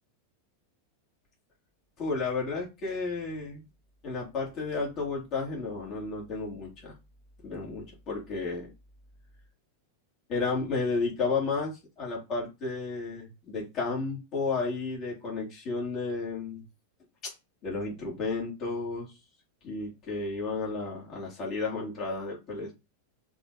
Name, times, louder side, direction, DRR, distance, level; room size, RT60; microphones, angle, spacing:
voice 1, 2.0-3.6 4.0-6.9 7.4-8.7 10.3-16.6 17.2-17.3 17.6-19.1 19.6-22.7, left 4 dB, 40° left, -3 dB, 3.1 m, -32 dB
6.0 x 4.0 x 5.0 m, 0.25 s
figure-of-eight pair, 90°, 0 cm